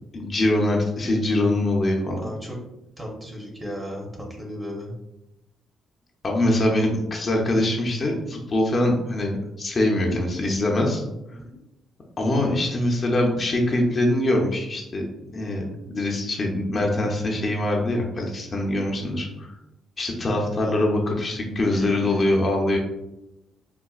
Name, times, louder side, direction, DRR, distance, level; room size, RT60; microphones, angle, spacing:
voice 1, 0.1-2.2 6.2-11.0 12.2-15.1 15.3-19.5 20.0-22.8, left 1 dB, 35° left, -1 dB, 0.5 m, -23 dB
voice 2, 2.2-2.6 3.0-5.0 11.3-11.6 21.7-22.4, equal, 15° right, -1 dB, 0.8 m, -35 dB
4.0 x 2.1 x 2.3 m, 0.92 s
cardioid pair, 90°, 0 cm